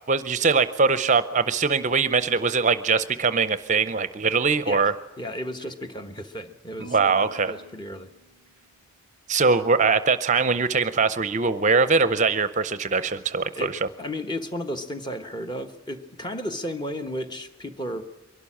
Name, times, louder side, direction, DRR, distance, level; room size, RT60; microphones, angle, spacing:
voice 1, 0.1-4.9 6.9-7.5 9.3-13.9, right 4 dB, 35° right, 14 dB, 0.6 m, -22 dB
voice 2, 5.2-8.1 13.6-18.0, equal, 20° left, 8 dB, 1.1 m, -33 dB
Marimba xylophone, 6.8-9.0, right 2 dB, 85° left, 2.3 m, -50 dB
23.0 x 12.0 x 10.0 m, 1.1 s
head